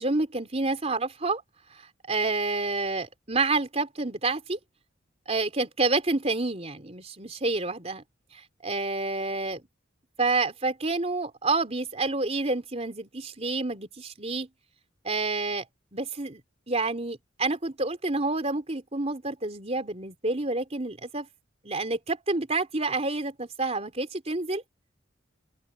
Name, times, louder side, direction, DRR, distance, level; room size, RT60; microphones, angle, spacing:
voice 1, 0.0-1.4 2.1-4.6 5.3-8.0 8.3-9.6 10.2-14.5 15.0-15.7 15.9-16.4 16.7-21.3 21.6-24.6, right 3 dB, 35° right, 3.8 m, -28 dB
open air
head